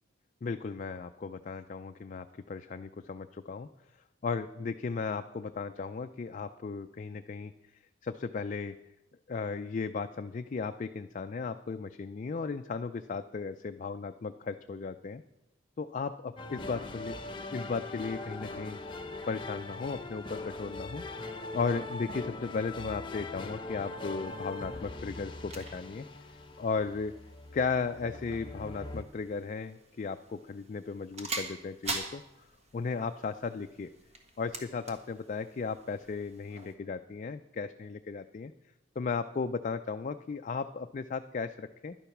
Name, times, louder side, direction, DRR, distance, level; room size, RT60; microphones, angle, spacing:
voice 1, 0.4-3.7 4.2-7.5 8.0-8.7 9.3-15.2 15.8-18.8 19.3-21.0 21.5-26.1 26.6-27.1 27.5-32.2 32.7-33.9 34.4-38.5 39.0-42.0, left 4 dB, 40° left, 8 dB, 0.4 m, -35 dB
sound 1, 16.4-29.0, left 2 dB, 25° left, 0.7 m, -41 dB
sound 2, 24.2-36.7, right 2 dB, 35° right, 1.5 m, -45 dB
11.0 x 10.0 x 5.9 m, 0.95 s
head